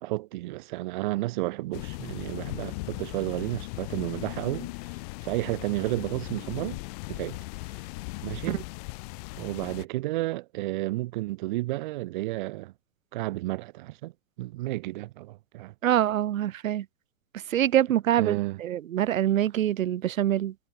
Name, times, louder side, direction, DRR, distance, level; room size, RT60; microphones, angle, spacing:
voice 1, 0.0-4.7 5.2-6.8 7.1-7.4 8.2-8.6 9.4-12.7 13.1-14.1 14.4-15.7 18.2-18.6, right 18 dB, 40° right, 0.8 m, -31 dB
sound 1, 1.7-9.9, left 27 dB, 30° left, 1.0 m, -38 dB
voice 2, 15.8-16.8 17.5-20.5, right 11 dB, 85° right, 1.3 m, -25 dB
hypercardioid pair, 160°, 39 cm